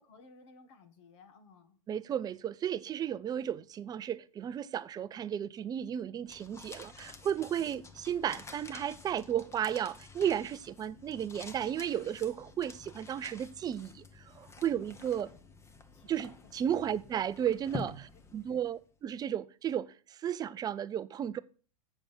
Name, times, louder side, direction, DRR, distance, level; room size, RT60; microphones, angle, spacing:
voice 1, 0.1-1.8 7.5-7.7 14.8-15.4 15.9-16.4 18.1-18.2, left 3 dB, 50° left, 1.6 m, -58 dB
voice 2, 1.9-15.3 16.1-21.4, right 9 dB, 20° right, 0.6 m, -34 dB
sound 1, 6.3-18.8, left 3 dB, 15° left, 1.2 m, -49 dB
7.8 x 7.0 x 8.1 m
figure-of-eight pair, 100°, 18 cm